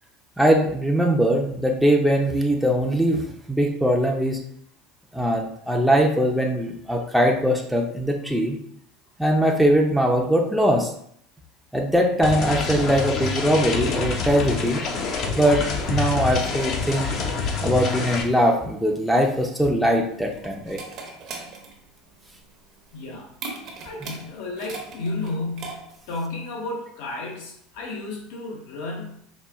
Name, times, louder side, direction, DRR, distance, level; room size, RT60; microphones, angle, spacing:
voice 1, 0.4-4.4 5.1-8.6 9.2-10.9 11.7-14.8 15.4-17.1 17.6-20.8, equal, ahead, 1 dB, 0.5 m, -21 dB
sound 1, 12.2-18.2, left 4 dB, 50° left, 0.6 m, -27 dB
sound 2, 19.8-26.1, right 3 dB, 45° right, 0.8 m, -39 dB
voice 2, 22.9-23.3 23.8-29.2, left 2 dB, 75° left, 0 dB, 1.0 m, -32 dB
4.3 x 2.2 x 3.5 m, 0.67 s
supercardioid pair, 120°, 0 cm